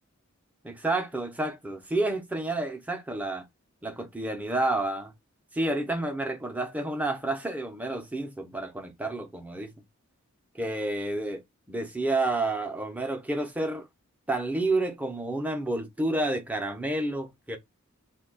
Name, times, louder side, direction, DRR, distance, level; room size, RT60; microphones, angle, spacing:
voice 1, 0.6-3.4 3.8-5.1 5.5-9.7 10.5-11.4 11.7-13.9 14.3-17.6, right 2 dB, 5° right, 0.5 m, -30 dB
2.6 x 2.2 x 3.9 m
head